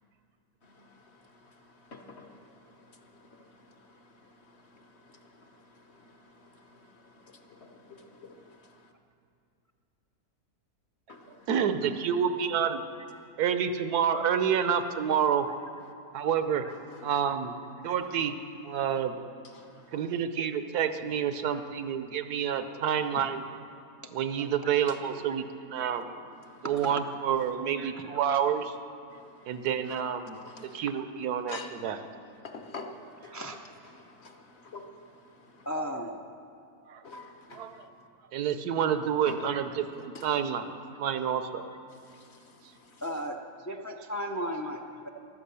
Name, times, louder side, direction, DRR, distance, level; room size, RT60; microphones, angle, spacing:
voice 1, 0.6-8.6 11.1-11.5 11.8-12.0 13.2-13.3 16.7-17.1 17.7-17.8 19.4-20.1 22.6-22.7 24.4-24.5 24.9-25.0 25.8-26.7 29.1-29.9 30.3-30.8 31.5-33.4 33.9-35.7 37.0-38.1 39.3-39.5 39.9-40.3 41.9-43.0, left 3 dB, 45° left, 5 dB, 1.2 m, -49 dB
voice 2, 11.5-12.8 13.4-15.5 16.1-16.6 17.0-17.5 17.8-19.2 19.9-23.4 24.1-25.4 25.7-26.1 26.6-28.8 29.5-30.4 30.6-32.0 36.9-37.0 37.5-37.9 38.3-40.7 41.0-41.7, right 8 dB, 80° right, 10 dB, 1.3 m, -28 dB
voice 3, 26.6-27.0 27.9-28.4 33.3-33.6 35.7-36.3 43.0-45.1, equal, 25° left, 4 dB, 0.3 m, -36 dB
15.0 x 12.0 x 6.9 m, 2.4 s
omnidirectional pair, 1.6 m